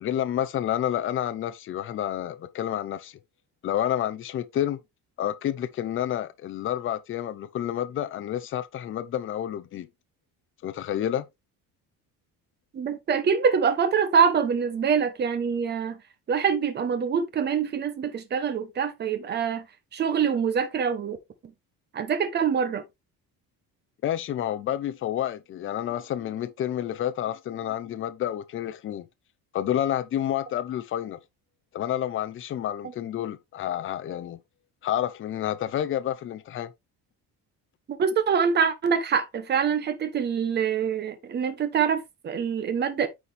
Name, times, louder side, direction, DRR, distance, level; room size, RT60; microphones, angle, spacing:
voice 1, 0.0-3.2 3.6-4.8 5.2-9.9 10.6-11.3 24.0-29.1 29.5-31.2 31.7-34.4 34.8-36.7, left 11 dB, 35° left, 0.7 m, -29 dB
voice 2, 12.7-16.0 16.3-19.7 19.9-21.2 21.9-22.8 37.9-43.1, right 6 dB, 30° right, 1.1 m, -25 dB
9.4 x 4.3 x 3.4 m
cardioid pair, 175°, 35 cm